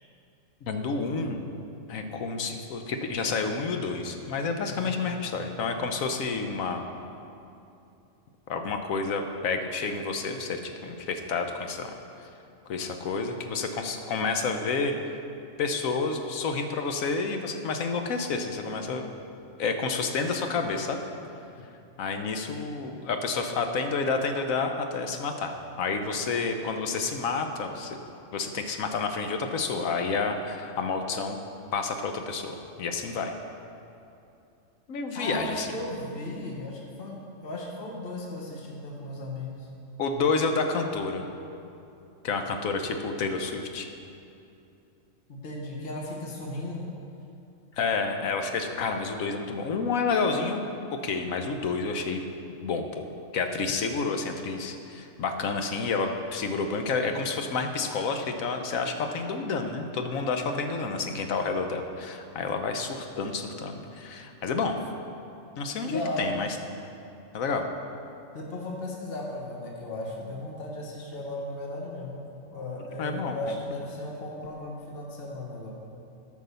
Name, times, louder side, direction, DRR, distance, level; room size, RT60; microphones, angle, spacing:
voice 1, 0.6-1.4 1.9-6.8 8.5-11.9 12.2-12.3 12.7-14.9 15.6-19.1 19.6-21.0 22.0-28.0 28.3-31.4 31.7-33.3 34.9-35.7 40.0-41.3 42.2-43.9 47.7-50.6 50.9-52.2 52.6-53.1 53.3-64.7 65.6-66.5 67.3-67.7 73.0-73.5, left 4 dB, 90° left, 5 dB, 1.3 m, -29 dB
voice 2, 4.7-5.0 35.1-39.7 45.3-46.9 65.9-66.3 68.3-75.7, left 1 dB, 45° left, -2 dB, 1.4 m, -36 dB
13.0 x 5.3 x 6.8 m, 2.7 s
omnidirectional pair, 1.4 m